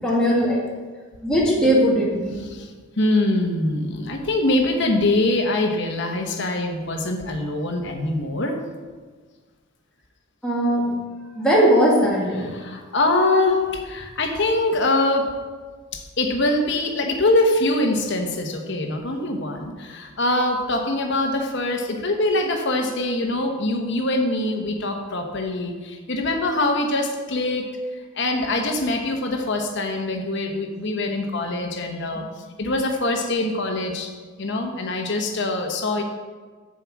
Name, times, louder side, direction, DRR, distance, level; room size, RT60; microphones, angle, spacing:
voice 1, 0.0-0.6 1.2-2.4 10.4-10.8 11.4-12.5, equal, 5° left, -6 dB, 1.8 m, -19 dB
voice 2, 3.0-8.6 12.4-15.3 15.9-27.7 28.2-32.2 32.6-34.1 34.4-36.0, left 2 dB, 55° left, 3 dB, 1.0 m, -23 dB
7.5 x 7.4 x 4.7 m, 1.5 s
head